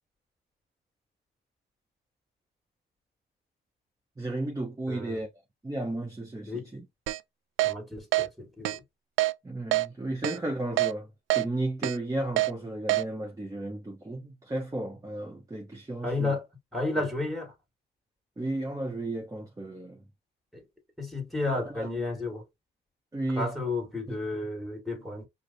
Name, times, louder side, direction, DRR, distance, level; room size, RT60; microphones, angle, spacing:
voice 1, 4.2-5.3 5.6-6.8 9.4-11.1 11.3-16.4 18.4-20.0 21.5-21.9 23.1-23.6, right 2 dB, 15° right, 1.1 m, -33 dB
voice 2, 4.9-5.2 6.5-6.7 7.6-8.8 16.0-17.5 20.5-20.6 21.0-22.5 23.4-25.3, left 2 dB, ahead, 2.0 m, -32 dB
Keyboard (musical), 7.1-7.2 7.6-7.7 8.1-8.3 8.7-8.8 9.2-9.3 9.7-9.9 10.2-10.4 10.8-10.9 11.3-11.4 11.8-12.0 12.4-12.5 12.9-13.0, right 18 dB, 85° right, 0.4 m, -25 dB
4.8 x 2.2 x 4.1 m
cardioid pair, 90°, 20 cm